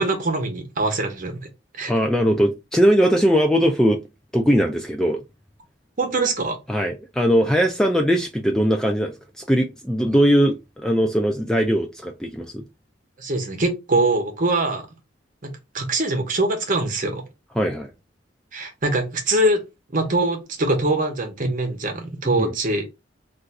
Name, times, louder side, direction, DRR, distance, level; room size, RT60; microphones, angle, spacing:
voice 1, 0.0-1.5 1.7-1.9 6.0-6.6 13.2-14.9 15.4-17.2 18.5-19.6 19.9-22.9, right 2 dB, 45° right, 0.8 m, -23 dB
voice 2, 1.9-4.0 4.3-5.2 6.7-12.6 17.6-17.9 22.4-22.5, equal, 5° left, 0.3 m, -20 dB
2.5 x 2.3 x 4.0 m
head